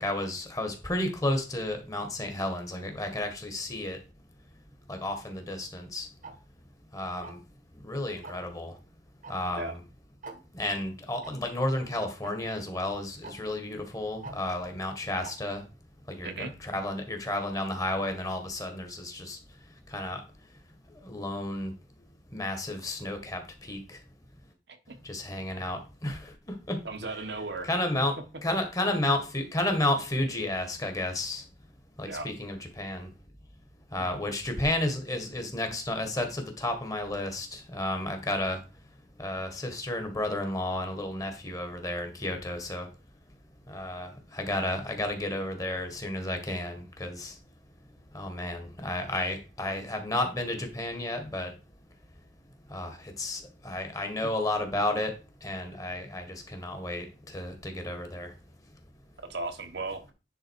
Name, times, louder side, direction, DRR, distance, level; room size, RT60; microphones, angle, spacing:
voice 1, 0.0-4.0 4.9-6.1 6.9-7.4 7.8-8.7 9.3-9.8 10.5-15.6 16.1-19.4 19.9-20.2 21.0-21.7 22.3-24.0 25.0-26.3 26.7-26.8 27.6-31.4 32.0-33.1 33.9-38.6 39.2-42.9 43.7-47.3 48.1-51.5 52.7-55.1 55.4-58.3, left 1 dB, 20° left, 1.6 m, -32 dB
Tick-tock, 6.2-6.3 7.2-7.5 8.2-8.5 9.2-9.3 9.6-9.7 10.2-10.4 11.2-11.3 12.2-12.3 13.2-13.3 14.2-14.3 15.2-15.3, right 4 dB, 50° right, 1.4 m, -43 dB
voice 2, 16.2-16.5 24.7-25.0 26.8-27.7 32.0-32.3 59.3-60.1, right 3 dB, 65° right, 1.4 m, -36 dB
10.0 x 3.8 x 4.7 m
head